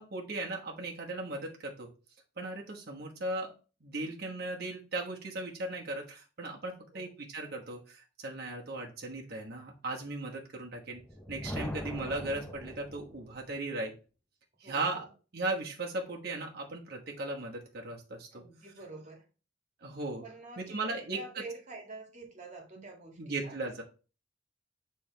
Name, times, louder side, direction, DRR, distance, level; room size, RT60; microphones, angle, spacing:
voice 1, 0.0-1.9 2.4-3.5 3.8-11.0 11.3-13.9 14.6-15.1 15.3-18.4 19.8-20.2 20.6-21.2 23.2-23.8, right 2 dB, 55° right, 1.2 m, -37 dB
voice 2, 6.8-7.1 14.6-15.1 18.3-19.3 20.2-23.6, right 2 dB, 40° right, 1.8 m, -47 dB
Thunder, 10.8-13.5, equal, 10° left, 0.7 m, -41 dB
6.9 x 3.5 x 4.5 m
head